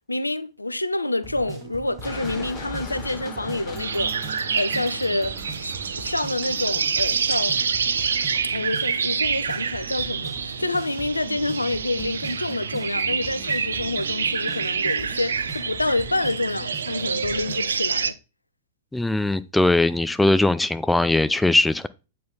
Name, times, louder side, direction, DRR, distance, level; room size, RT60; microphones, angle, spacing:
voice 1, 0.1-7.6 8.5-18.1, left 2 dB, 85° left, 0.5 m, -28 dB
sound 1, 1.2-17.6, right 5 dB, 20° right, 1.9 m, -41 dB
sound 2, 2.0-7.4, left 3 dB, 30° left, 3.7 m, -40 dB
sound 3, 3.8-18.1, right 6 dB, 70° right, 0.5 m, -27 dB
voice 2, 18.9-21.9, left 2 dB, 5° left, 0.5 m, -20 dB
8.4 x 4.6 x 3.9 m
figure-of-eight pair, 100°, 0 cm